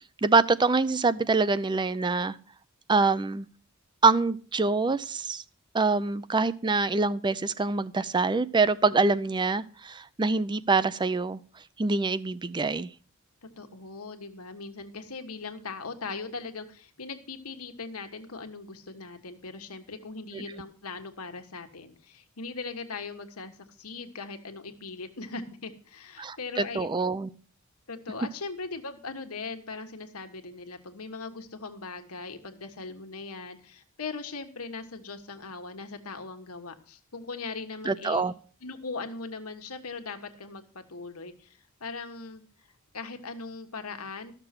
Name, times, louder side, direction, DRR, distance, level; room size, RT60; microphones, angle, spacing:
voice 1, 0.2-2.4 2.9-3.5 4.0-5.4 5.7-11.4 11.8-12.9 20.3-20.4 26.2-27.3 37.8-38.3, right 3 dB, 20° right, 16 dB, 0.4 m, -25 dB
voice 2, 13.4-26.9 27.9-38.3 38.6-42.4 42.9-44.3, left 4 dB, 90° left, 6 dB, 1.5 m, -39 dB
13.5 x 6.8 x 5.9 m, 0.43 s
head